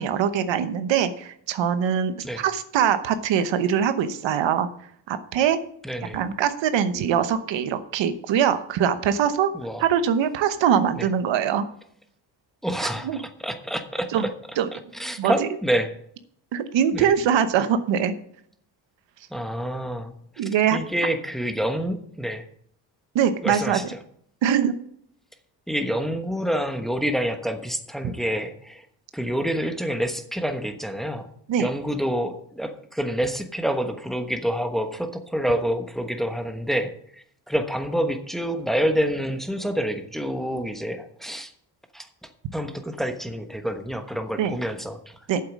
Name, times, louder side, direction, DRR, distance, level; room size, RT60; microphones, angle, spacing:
voice 1, 0.0-4.7 5.1-5.6 6.1-9.5 9.8-11.6 13.0-13.2 14.1-14.3 14.6-14.7 15.2-15.5 16.5-18.1 20.4-20.8 23.1-23.8 24.4-24.7 31.5-31.7 44.4-44.6 45.3-45.4, right 8 dB, 90° right, 11 dB, 1.0 m, -22 dB
voice 2, 5.8-6.2 9.5-9.8 10.9-11.1 12.6-14.3 14.7-15.9 16.9-17.1 19.3-20.2 20.4-22.4 23.4-24.0 25.7-28.8 29.1-31.3 31.6-41.5 41.9-45.2, equal, ahead, 6 dB, 1.1 m, -28 dB
8.7 x 7.5 x 6.2 m, 0.67 s
cardioid pair, 95°, 43 cm